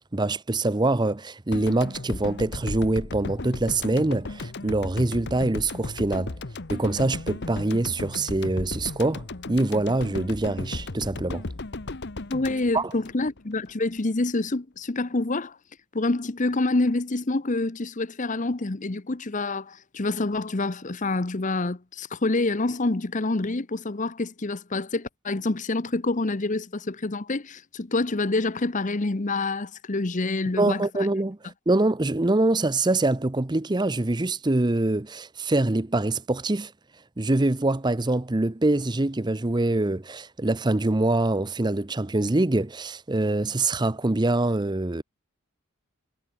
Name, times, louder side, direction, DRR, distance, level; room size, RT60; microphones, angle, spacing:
voice 1, 0.1-6.3 6.7-11.4 12.7-12.9 30.6-36.7 37.2-45.0, right 2 dB, 20° right, 0.7 m, -24 dB
sound 1, 1.5-13.7, left 2 dB, 50° left, 1.2 m, -35 dB
voice 2, 12.3-15.6 15.9-30.8, left 2 dB, 35° left, 0.8 m, -27 dB
head